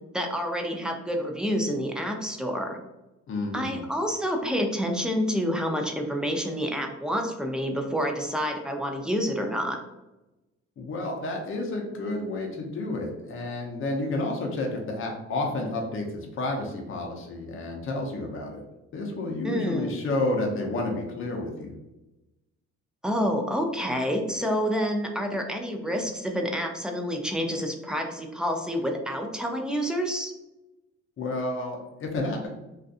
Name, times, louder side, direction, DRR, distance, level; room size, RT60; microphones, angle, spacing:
voice 1, 0.1-2.8 3.5-9.8 19.4-20.0 23.0-30.3, equal, 5° right, 2 dB, 0.4 m, -28 dB
voice 2, 3.3-3.8 10.8-18.6 18.9-21.8 31.2-32.5, left 2 dB, 45° left, 1 dB, 0.6 m, -30 dB
2.5 x 2.4 x 2.4 m, 1.0 s
cardioid pair, 90°, 30 cm